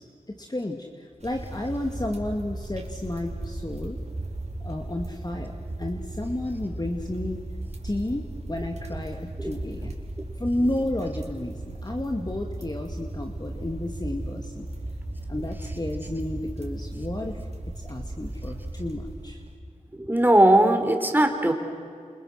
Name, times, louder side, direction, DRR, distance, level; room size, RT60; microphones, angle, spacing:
voice 1, 0.0-4.0 4.6-7.4 7.8-9.9 10.4-14.7 15.3-17.4 17.8-19.4, left 1 dB, 30° left, 2 dB, 2.2 m, -32 dB
sound 1, 1.2-19.5, right 1 dB, 55° right, 4.5 m, -36 dB
voice 2, 20.0-21.5, right 1 dB, 15° right, 5 dB, 4.1 m, -19 dB
29.0 x 28.5 x 6.6 m, 2.3 s
cardioid pair, 50°, 14 cm